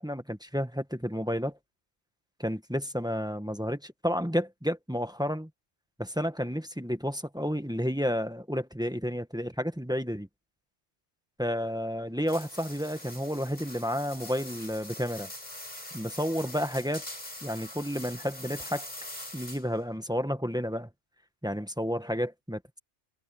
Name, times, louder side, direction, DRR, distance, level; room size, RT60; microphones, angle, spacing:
voice 1, 0.0-1.5 2.4-5.5 6.0-10.3 11.4-15.3 15.9-17.0 17.4-18.9 19.3-20.9 21.4-22.8, equal, 5° right, 1.3 m, -31 dB
sound 1, 12.3-19.8, left 1 dB, 35° left, 6.3 m, -43 dB
omnidirectional pair, 1.2 m